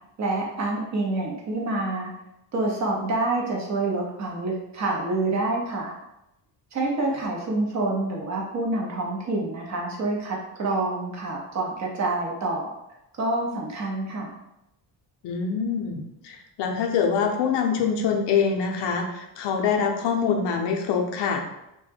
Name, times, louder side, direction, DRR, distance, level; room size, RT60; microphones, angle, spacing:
voice 1, 0.2-2.1 2.5-5.9 6.7-12.7 13.2-14.3, right 2 dB, 40° right, -1 dB, 0.6 m, -27 dB
voice 2, 15.2-21.4, left 6 dB, 70° left, 2 dB, 0.5 m, -25 dB
2.1 x 2.1 x 3.2 m, 0.87 s
cardioid pair, 120°, 44 cm